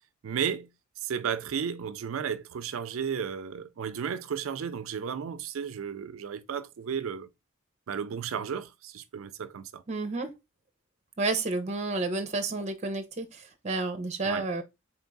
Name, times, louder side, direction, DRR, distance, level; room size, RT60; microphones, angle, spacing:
voice 1, 0.2-0.7 1.0-7.3 7.9-9.8 14.2-14.5, right 7 dB, 75° right, 0.4 m, -33 dB
voice 2, 9.9-10.3 11.2-14.6, right 3 dB, 30° right, 0.7 m, -30 dB
3.9 x 3.6 x 3.9 m
head